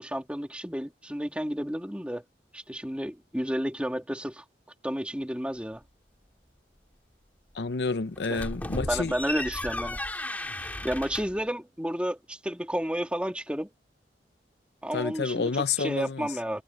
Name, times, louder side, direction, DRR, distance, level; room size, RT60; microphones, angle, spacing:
voice 1, 0.0-2.2 2.5-4.4 4.8-5.8 8.3-8.4 8.9-10.0 10.6-13.7 14.8-15.5 15.8-16.6, equal, 5° right, 2.0 m, -31 dB
voice 2, 7.5-9.1 14.9-16.3, left 4 dB, 75° left, 0.7 m, -29 dB
sound 1, 8.1-11.4, left 1 dB, 10° left, 2.4 m, -35 dB
head